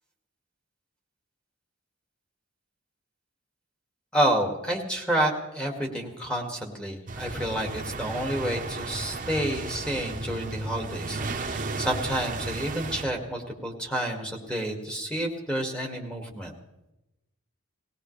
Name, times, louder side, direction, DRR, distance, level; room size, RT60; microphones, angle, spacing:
voice 1, 4.1-16.5, right 1 dB, 5° left, 0 dB, 2.0 m, -29 dB
sound 1, 7.1-13.0, right 3 dB, 40° right, 1.0 m, -34 dB
19.5 x 18.0 x 3.3 m, 0.95 s
head